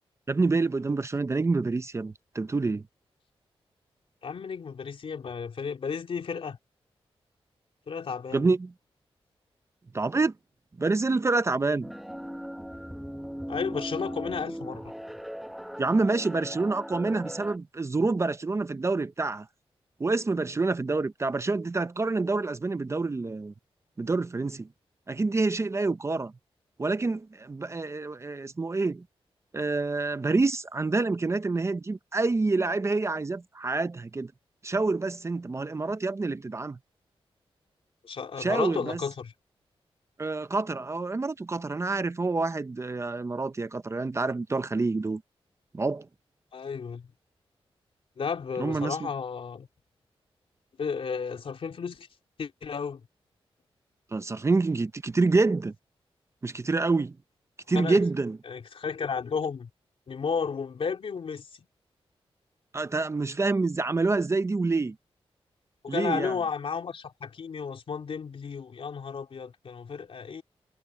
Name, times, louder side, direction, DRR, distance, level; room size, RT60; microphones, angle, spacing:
voice 1, 0.3-2.8 8.3-8.7 9.9-10.3 10.8-11.9 15.8-19.5 20.0-23.5 24.0-24.7 25.1-26.3 26.8-29.0 29.5-34.3 34.6-36.8 38.4-39.0 40.2-45.2 45.7-46.1 48.6-49.0 54.1-55.7 56.4-57.2 57.7-58.4 62.7-65.0 65.9-66.3, right 3 dB, 30° right, 0.7 m, -27 dB
voice 2, 4.2-6.6 7.9-8.5 13.5-14.9 38.0-39.3 46.5-47.1 48.2-49.7 50.8-52.1 52.4-53.0 57.7-58.0 58.5-59.7 60.1-61.5 65.8-70.4, left 6 dB, 65° left, 3.2 m, -33 dB
sound 1, 11.8-17.6, equal, ahead, 1.2 m, -38 dB
wide cardioid pair, 105°, 10 cm